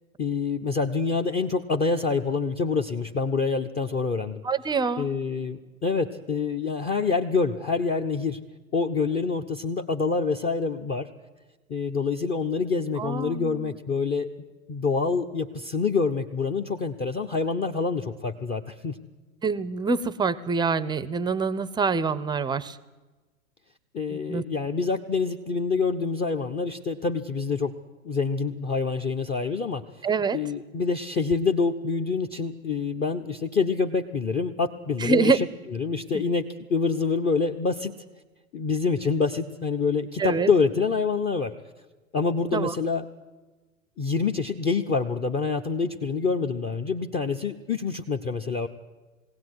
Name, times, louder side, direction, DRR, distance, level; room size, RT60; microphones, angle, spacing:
voice 1, 0.2-4.4 5.0-8.4 8.7-11.1 11.7-14.3 14.7-19.0 23.9-27.7 28.0-29.8 30.3-35.5 35.8-38.0 38.5-41.5 42.1-43.0 44.0-48.7, left 4 dB, 20° left, 4 dB, 1.0 m, -26 dB
voice 2, 4.4-5.1 13.0-13.8 19.4-22.8 24.1-24.4 30.0-30.4 35.0-35.4 36.1-36.2 40.2-40.5 42.5-42.7, right 4 dB, 10° right, 17 dB, 0.7 m, -25 dB
21.0 x 17.0 x 9.7 m, 1.2 s
hypercardioid pair, 105°, 41 cm